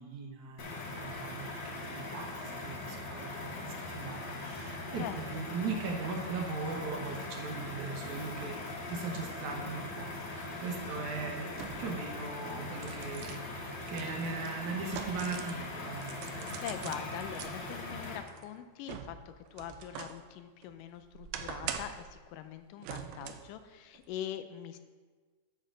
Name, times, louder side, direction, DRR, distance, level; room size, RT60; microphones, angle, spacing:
voice 1, 0.0-16.5 16.8-16.9, right 4 dB, 70° right, 1 dB, 2.4 m, -39 dB
sound 1, 0.6-18.2, left 2 dB, 60° left, 1.2 m, -41 dB
voice 2, 5.0-5.4 11.2-11.9 16.6-24.8, left 9 dB, 90° left, 10 dB, 2.2 m, -43 dB
sound 2, 10.2-10.3 11.5-12.0 12.5-15.6 16.0-17.5 18.0-20.2 20.6-22.1 22.8-23.5 23.9-24.1, right 8 dB, 85° right, 2.1 m, -43 dB
11.5 x 6.5 x 3.8 m, 1.4 s
omnidirectional pair, 3.7 m